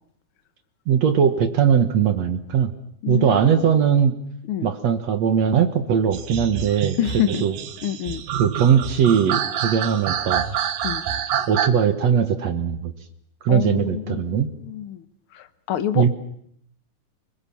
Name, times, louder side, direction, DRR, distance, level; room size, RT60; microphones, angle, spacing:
voice 1, 0.9-2.7 3.1-4.1 4.6-7.5 8.4-10.4 11.5-12.9 13.4-14.5 16.0-16.1, right 7 dB, 60° right, 2.1 m, -20 dB
voice 2, 3.0-3.7 4.5-4.7 7.0-7.4 7.8-8.2 10.8-11.0 13.5-15.0 15.3-16.1, left 11 dB, 75° left, 1.2 m, -27 dB
sound 1, 6.1-11.7, right 8 dB, 75° right, 3.0 m, -27 dB
29.5 x 21.0 x 7.2 m
omnidirectional pair, 4.1 m